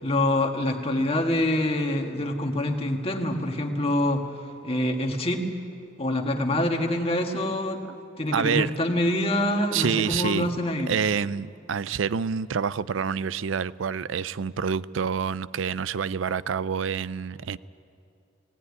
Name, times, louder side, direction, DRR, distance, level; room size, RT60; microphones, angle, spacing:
voice 1, 0.0-4.2 4.6-5.5 6.0-7.8 8.2-10.9, left 1 dB, 30° left, 1.7 m, -25 dB
voice 2, 8.3-8.7 9.7-10.6 10.9-17.6, right 6 dB, 90° right, 0.5 m, -27 dB
19.0 x 17.5 x 9.6 m
head